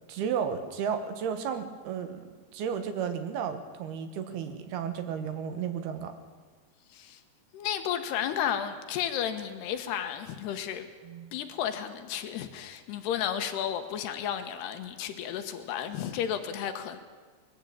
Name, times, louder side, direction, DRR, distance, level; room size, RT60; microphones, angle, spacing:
voice 1, 0.1-6.2 11.0-11.3, right 7 dB, 70° right, 3.0 m, -33 dB
voice 2, 6.9-7.2 7.5-10.9 11.3-17.0, left 9 dB, 75° left, 3.2 m, -33 dB
21.0 x 14.5 x 8.7 m
omnidirectional pair, 4.9 m